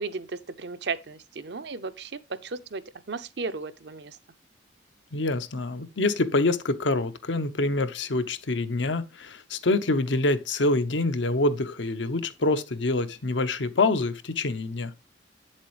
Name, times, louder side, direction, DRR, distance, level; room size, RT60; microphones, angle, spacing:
voice 1, 0.0-4.2, right 4 dB, 65° right, 0.7 m, -35 dB
voice 2, 5.1-14.9, left 2 dB, 85° left, 0.8 m, -26 dB
8.6 x 7.4 x 3.1 m
head